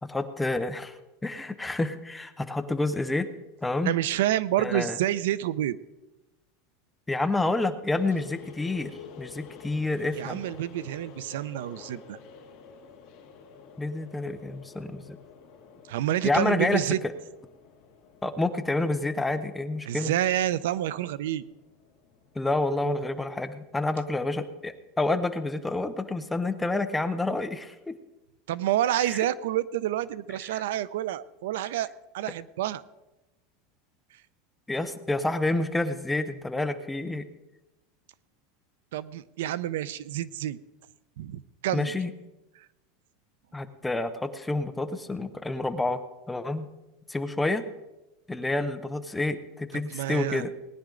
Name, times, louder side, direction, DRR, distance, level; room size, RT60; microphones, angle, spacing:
voice 1, 0.0-1.0 1.2-3.3 3.6-4.0 4.6-5.0 7.1-10.4 13.8-15.0 16.2-16.8 18.2-20.1 22.4-27.9 29.1-29.3 30.5-30.6 34.7-37.3 41.7-42.1 43.5-46.0 46.3-46.7 47.1-47.6 48.3-50.5, left 2 dB, 5° left, 9 dB, 0.6 m, -28 dB
voice 2, 3.8-5.8 10.2-12.2 15.9-17.0 19.8-21.4 28.5-31.9 32.1-32.8 38.9-40.6 41.2-42.0 42.6-42.7 49.9-50.4, right 12 dB, 80° right, 17 dB, 0.5 m, -28 dB
sound 1, 7.9-23.2, left 6 dB, 40° left, 2.2 m, -50 dB
19.0 x 10.0 x 3.8 m, 1.0 s
supercardioid pair, 170°, 0 cm